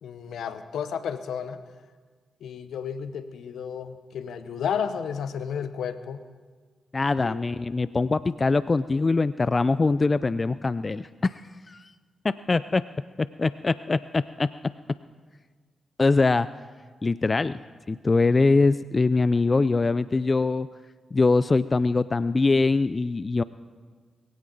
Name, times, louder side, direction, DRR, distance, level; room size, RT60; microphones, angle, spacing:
voice 1, 0.0-1.6 2.4-6.2 7.2-7.5, left 7 dB, 75° left, 12 dB, 0.9 m, -32 dB
voice 2, 6.9-11.4 11.7-11.9 12.2-12.8 13.2-14.5 16.0-16.5 17.0-17.6 17.9-20.7 21.1-23.4, left 3 dB, 40° left, 16 dB, 0.4 m, -23 dB
20.5 x 16.5 x 4.0 m, 1.5 s
supercardioid pair, 40°, 0 cm